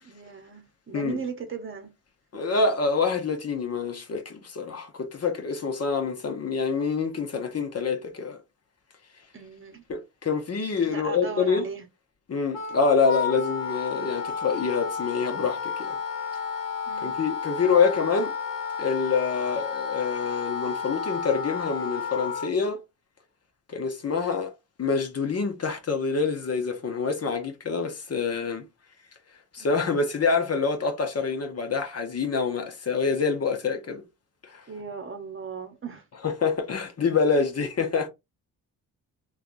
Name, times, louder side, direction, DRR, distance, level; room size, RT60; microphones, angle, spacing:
voice 1, 0.0-1.9 2.3-2.4 9.3-9.8 10.9-11.9 16.9-17.1 29.6-29.8 34.7-36.1, right 6 dB, 30° right, 0.9 m, -37 dB
voice 2, 2.3-8.4 9.9-11.6 12.3-16.0 17.0-18.3 18.8-22.8 23.7-24.5 24.8-28.6 29.5-34.0 34.4-34.6 36.2-38.1, left 5 dB, 35° left, 0.8 m, -26 dB
Wind instrument woodwind instrument, 12.5-22.5, left 6 dB, 55° left, 1.2 m, -32 dB
3.4 x 2.3 x 2.5 m
cardioid pair, 75°, 41 cm